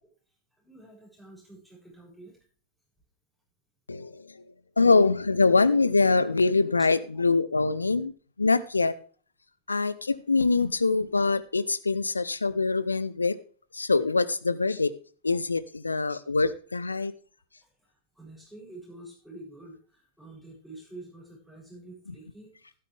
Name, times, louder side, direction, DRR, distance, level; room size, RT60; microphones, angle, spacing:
voice 1, 0.6-2.4 7.1-7.2 17.6-17.7 18.2-22.5, right 2 dB, ahead, 7.6 m, -47 dB
voice 2, 3.9-4.3 4.8-8.1 8.4-8.9 9.7-13.4 13.7-14.9 15.2-17.1, left 3 dB, 80° left, 0.7 m, -24 dB
12.5 x 11.0 x 3.4 m
figure-of-eight pair, 90°, 0 cm